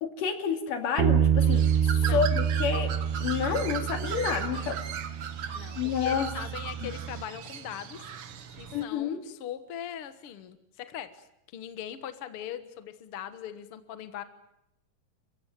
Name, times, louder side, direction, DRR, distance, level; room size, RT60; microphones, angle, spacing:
voice 1, 0.0-2.9 3.2-4.8 5.8-6.3 6.8-6.9 8.7-9.2, left 7 dB, 70° left, 7 dB, 4.0 m, -29 dB
Bass guitar, 1.0-7.2, right 8 dB, 70° right, 2.4 m, -28 dB
Bird, 1.4-8.8, right 8 dB, 50° right, 1.9 m, -38 dB
voice 2, 4.4-4.8 5.5-8.0 8.6-11.3 11.5-14.2, left 10 dB, 50° left, 10 dB, 1.9 m, -40 dB
30.0 x 16.5 x 9.2 m, 0.82 s
omnidirectional pair, 3.9 m